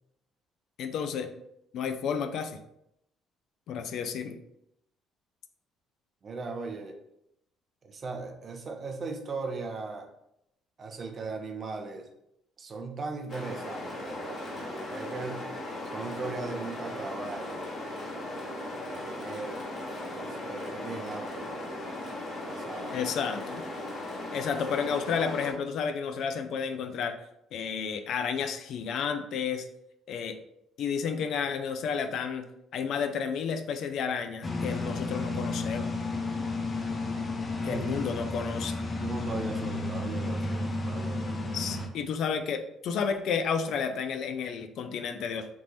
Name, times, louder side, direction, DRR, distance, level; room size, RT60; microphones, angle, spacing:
voice 1, 0.8-1.3 1.7-2.6 3.7-4.4 22.9-23.6 24.3-27.2 27.5-29.6 30.1-30.4 30.8-35.9 37.6-38.8 41.5-45.5, left 6 dB, 70° left, 7 dB, 0.4 m, -31 dB
voice 2, 6.2-7.0 7.8-10.1 10.8-12.1 12.6-15.4 15.8-17.6 18.9-19.7 20.1-21.6 22.5-23.1 37.6-38.0 39.0-41.6, right 4 dB, 45° right, 4 dB, 0.6 m, -38 dB
sound 1, 13.3-25.5, left 1 dB, 50° left, 1.1 m, -37 dB
sound 2, 34.4-41.9, left 2 dB, 35° left, 0.6 m, -32 dB
3.5 x 2.5 x 3.0 m, 0.79 s
supercardioid pair, 80°, 0 cm